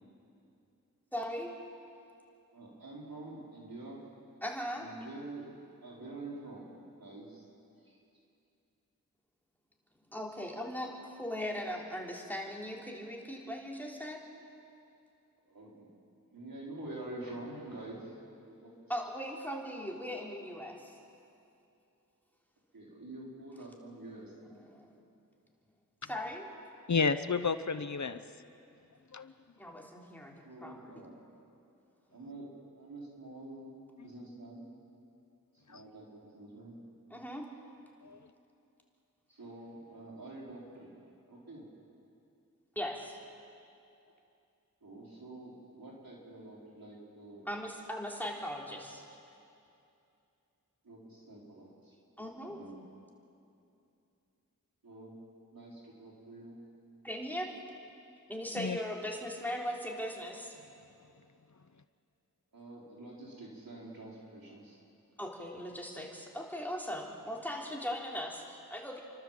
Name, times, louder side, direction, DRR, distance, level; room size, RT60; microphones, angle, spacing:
voice 1, 1.1-1.6 4.4-4.9 10.1-14.2 18.9-20.9 24.5-25.0 26.0-26.5 29.6-31.0 37.1-37.5 42.8-43.2 47.5-49.0 52.2-52.6 57.0-57.5 58.3-60.6 65.2-69.0, equal, 5° left, -1 dB, 3.7 m, -39 dB
voice 2, 2.5-4.0 4.7-5.5 5.8-6.7 7.0-7.5 7.8-8.0 15.5-15.9 16.3-18.2 18.4-18.9 22.7-24.3 30.4-31.1 32.1-32.5 32.8-33.7 34.0-34.6 35.7-36.8 39.3-40.9 41.3-41.7 44.8-47.4 50.8-51.9 52.4-52.8 54.8-55.1 55.5-56.6 62.5-64.8, right 2 dB, 85° right, -4 dB, 5.0 m, -47 dB
voice 3, 26.9-28.2 29.1-29.3 35.7-35.8 38.0-38.2 58.6-58.8, left 5 dB, 55° left, 11 dB, 0.8 m, -31 dB
29.5 x 12.5 x 7.6 m, 2.6 s
wide cardioid pair, 40°, 34 cm